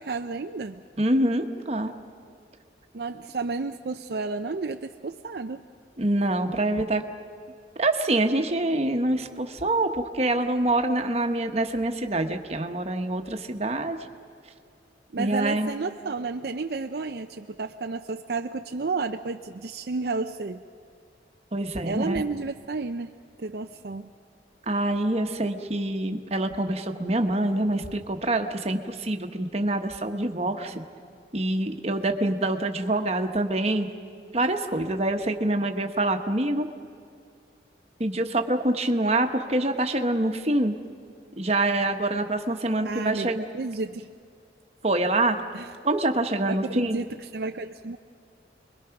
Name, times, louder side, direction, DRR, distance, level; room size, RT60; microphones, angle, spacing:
voice 1, 0.0-0.8 2.9-5.6 15.1-20.6 21.8-24.1 42.8-44.1 45.5-45.7 46.5-48.0, right 3 dB, 60° right, 5 dB, 0.5 m, -32 dB
voice 2, 1.0-1.9 6.0-7.0 7.8-14.0 15.2-15.7 21.5-22.2 24.7-30.8 31.3-33.9 34.3-36.7 38.0-40.7 41.4-43.4 44.8-45.4 45.8-47.0, right 1 dB, 35° right, 5 dB, 1.2 m, -25 dB
30.0 x 22.0 x 5.9 m, 2.3 s
head